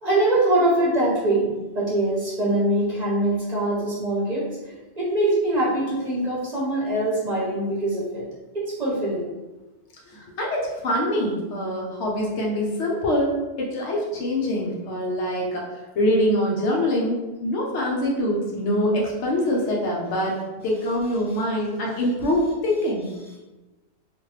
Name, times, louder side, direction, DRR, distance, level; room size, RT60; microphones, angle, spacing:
voice 1, 0.0-4.5 5.0-8.3 8.5-9.3, right 1 dB, 40° right, -6 dB, 0.8 m, -23 dB
voice 2, 6.1-6.5 10.1-23.1, left 1 dB, 75° left, -2 dB, 1.1 m, -24 dB
3.0 x 2.5 x 3.1 m, 1.1 s
omnidirectional pair, 1.2 m